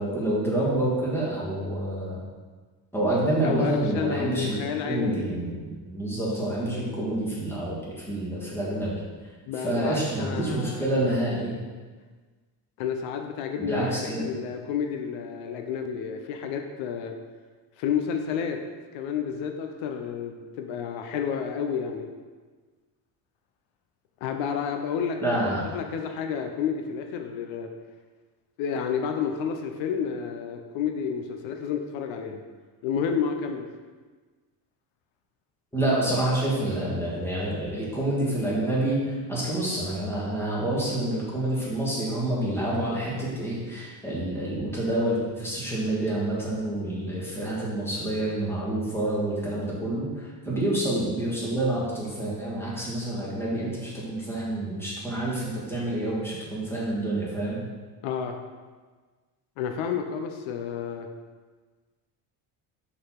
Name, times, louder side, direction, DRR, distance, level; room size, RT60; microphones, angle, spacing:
voice 1, 0.0-2.2 2.9-4.6 4.8-8.9 9.6-11.6 13.6-14.3 25.2-25.6 35.7-57.6, right 1 dB, 5° left, -7 dB, 1.7 m, -28 dB
voice 2, 3.4-5.2 9.5-10.8 12.8-17.1 17.8-18.6 18.9-22.1 24.2-27.7 28.6-32.4 32.8-33.7 58.0-58.4 59.6-61.1, left 7 dB, 80° left, 4 dB, 0.8 m, -30 dB
5.5 x 4.1 x 5.7 m, 1.4 s
cardioid pair, 150°, 45 cm